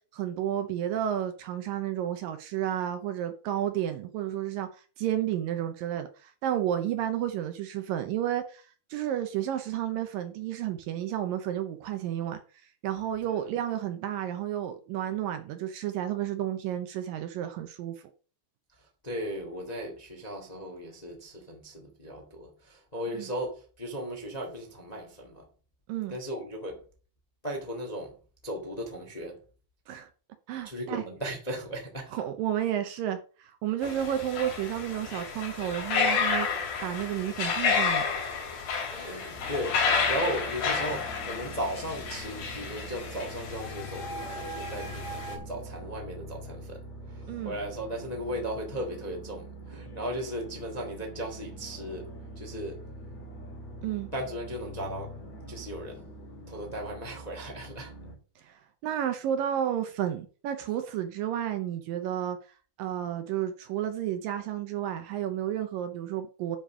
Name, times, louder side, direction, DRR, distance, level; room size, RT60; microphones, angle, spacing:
voice 1, 0.1-8.6 8.9-12.4 12.8-18.0 23.1-23.3 25.9-26.2 29.9-30.1 30.5-31.0 32.1-36.5 36.8-38.1 47.3-47.6 53.8-54.1 58.4-62.4 62.8-66.6, right 11 dB, 75° right, 2.4 m, -31 dB
voice 2, 19.0-25.4 26.1-26.8 27.4-28.1 28.4-29.4 30.6-32.1 38.9-46.8 47.1-52.1 52.3-52.8 54.1-55.2 55.5-56.1 56.5-57.9, equal, 20° left, 1.2 m, -36 dB
sound 1, 33.8-45.4, left 5 dB, 90° left, 4.7 m, -31 dB
sound 2, 39.4-58.2, right 1 dB, 45° left, 3.9 m, -44 dB
10.0 x 5.3 x 6.2 m
omnidirectional pair, 4.6 m